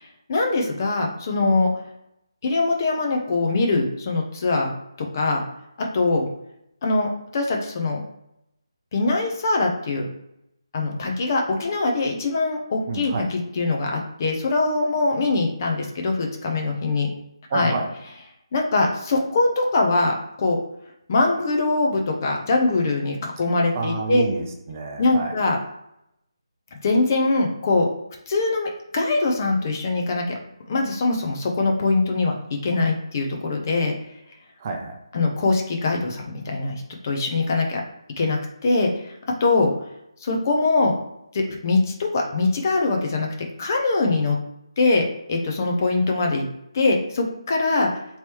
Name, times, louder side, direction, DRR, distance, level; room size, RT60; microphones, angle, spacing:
voice 1, 0.3-1.7 2.4-4.7 5.0-5.4 5.8-6.3 6.8-8.0 8.9-10.1 10.7-17.1 17.5-17.7 18.5-20.6 21.1-24.2 25.0-25.6 26.7-27.9 28.3-30.4 30.7-33.9 35.1-37.8 38.2-39.1 39.4-39.7 40.2-40.9 41.3-43.3 43.6-44.4 44.8-46.5 46.7-47.9, left 3 dB, 35° left, 1 dB, 0.7 m, -22 dB
voice 2, 12.9-13.2 17.5-17.9 23.7-25.3 34.6-35.0, right 3 dB, 30° right, 2 dB, 0.5 m, -28 dB
3.1 x 3.0 x 3.0 m, 0.81 s
figure-of-eight pair, 155°, 3 cm